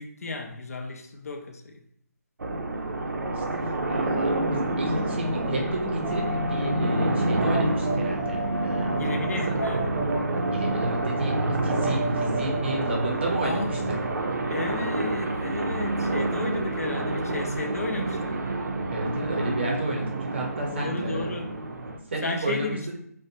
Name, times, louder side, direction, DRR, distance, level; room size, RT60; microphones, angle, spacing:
voice 1, 0.0-1.8 9.0-9.9 13.4-14.1 14.5-18.4 20.7-21.6 22.2-23.0, left 3 dB, 60° left, 0.4 m, -33 dB
sound 1, 2.4-22.0, right 2 dB, 85° right, 0.5 m, -28 dB
voice 2, 3.3-9.0 9.5-9.6 10.5-13.8 18.9-21.3 22.1-22.8, right 2 dB, 40° right, 0.6 m, -32 dB
sound 2, 6.0-16.8, right 1 dB, ahead, 0.6 m, -35 dB
2.5 x 2.1 x 2.7 m
hypercardioid pair, 170°, 9 cm